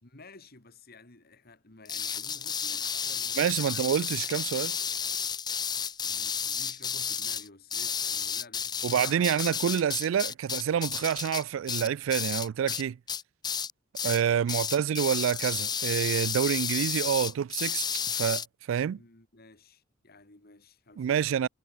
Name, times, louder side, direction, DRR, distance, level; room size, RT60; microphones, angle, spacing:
voice 1, 0.0-3.8 6.1-9.3 14.7-14.8 19.0-21.4, left 3 dB, 50° left, 2.7 m, -53 dB
sound 1, 1.8-12.8 13.1-13.7 13.9-14.2 14.5-18.4, left 7 dB, 20° left, 0.7 m, -32 dB
voice 2, 3.4-4.8 8.8-13.0 14.0-19.0 21.0-21.5, right 8 dB, 75° right, 0.3 m, -28 dB
head